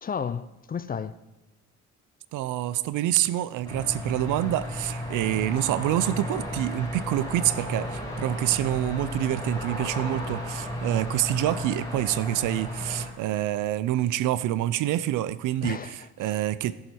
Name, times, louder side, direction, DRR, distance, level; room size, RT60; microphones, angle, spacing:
voice 1, 0.0-1.2 15.6-16.4, left 6 dB, 30° left, 0.5 m, -33 dB
voice 2, 2.3-15.8 16.2-16.7, right 14 dB, 85° right, 0.5 m, -27 dB
sound 1, 3.6-13.1, left 1 dB, 10° left, 4.4 m, -33 dB
17.5 x 6.4 x 4.5 m
cardioid pair, 90°, 30 cm